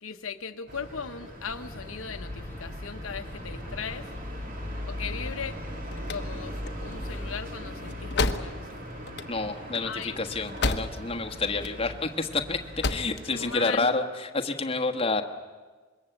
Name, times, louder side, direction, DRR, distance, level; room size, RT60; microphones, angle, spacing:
voice 1, 0.0-4.1 4.9-5.6 6.1-8.9 9.8-10.2 13.3-14.0, left 6 dB, 85° left, 7 dB, 1.1 m, -38 dB
sound 1, 0.7-13.6, equal, 45° right, 3.2 m, -39 dB
sound 2, 1.5-7.3, left 1 dB, 10° left, 1.0 m, -42 dB
sound 3, 5.6-11.2 11.5-12.3 12.6-13.2, left 3 dB, 55° left, 1.1 m, -32 dB
voice 2, 9.3-15.2, left 3 dB, 25° left, 4 dB, 1.4 m, -29 dB
26.0 x 22.0 x 8.0 m, 1.4 s
head